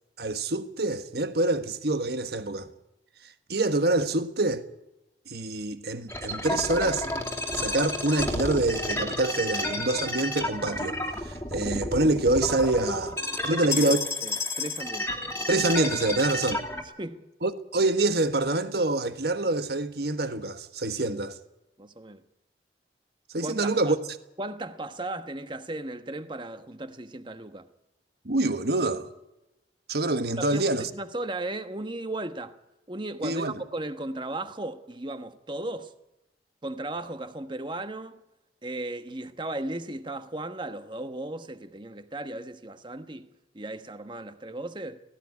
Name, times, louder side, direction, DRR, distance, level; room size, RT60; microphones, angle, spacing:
voice 1, 0.2-2.7 3.5-4.6 5.3-7.1 7.5-11.0 11.3-13.2 13.5-14.0 15.5-16.6 17.4-21.4 23.3-24.0 28.2-29.1 29.9-30.9 33.2-33.5, right 2 dB, 60° right, 1.4 m, -26 dB
sound 1, 6.1-16.8, left 2 dB, 15° left, 2.4 m, -31 dB
voice 2, 13.4-15.3 17.0-17.2 21.8-22.2 23.4-24.0 24.4-27.7 30.4-32.6 32.9-35.9 36.6-38.2 38.6-45.0, right 2 dB, 25° right, 1.2 m, -36 dB
17.5 x 16.5 x 9.5 m
head